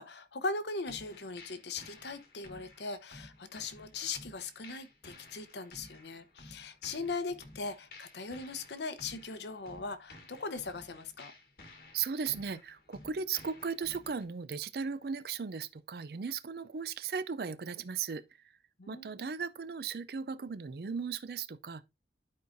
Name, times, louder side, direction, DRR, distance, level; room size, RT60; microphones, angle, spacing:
voice 1, 0.0-11.3 18.8-19.3, left 3 dB, 80° left, 0.9 m, -39 dB
sound 1, 0.8-14.2, left 2 dB, 60° left, 1.3 m, -54 dB
voice 2, 11.9-18.2 18.9-21.8, right 6 dB, 60° right, 0.4 m, -37 dB
11.5 x 4.7 x 2.6 m
head